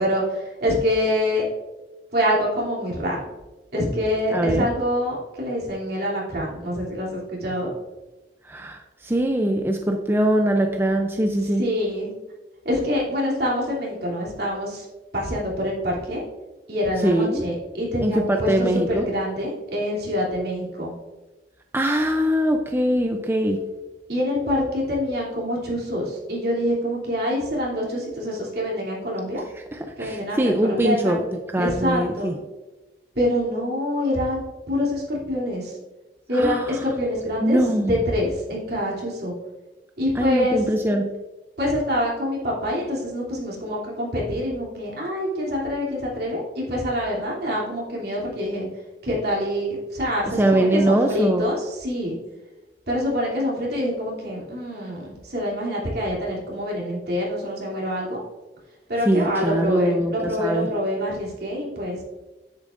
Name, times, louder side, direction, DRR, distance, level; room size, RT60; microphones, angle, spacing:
voice 1, 0.0-1.4 2.1-3.2 3.7-7.7 11.6-12.1 12.6-14.9 15.1-16.2 16.7-20.9 24.1-29.4 30.0-31.2 31.6-32.3 33.1-34.4 34.7-35.7 36.3-37.6 37.8-39.3 40.0-40.6 41.6-48.7 49.0-52.2 52.9-58.2 58.9-62.0, equal, 60° right, -4 dB, 3.0 m, -25 dB
voice 2, 4.3-4.7 8.4-11.6 17.0-17.4 18.0-19.1 21.7-23.6 29.7-31.2 31.5-32.4 36.3-36.8 37.4-38.0 40.1-41.1 50.4-51.5 59.1-60.7, right 1 dB, 15° right, 3 dB, 0.5 m, -22 dB
10.0 x 8.5 x 2.6 m, 1.1 s
head